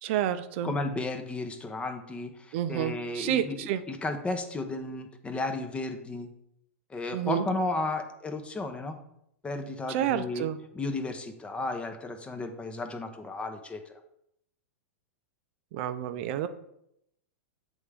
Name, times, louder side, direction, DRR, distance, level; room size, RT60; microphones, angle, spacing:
voice 1, 0.0-0.7 2.5-3.8 7.1-7.4 9.9-10.6 15.7-16.5, right 11 dB, 55° right, 11 dB, 0.5 m, -29 dB
voice 2, 0.6-6.3 6.9-9.0 9.4-10.5 10.7-13.9, left 2 dB, 15° left, 6 dB, 0.8 m, -34 dB
8.0 x 3.6 x 3.4 m, 0.77 s
hypercardioid pair, 110°, 8 cm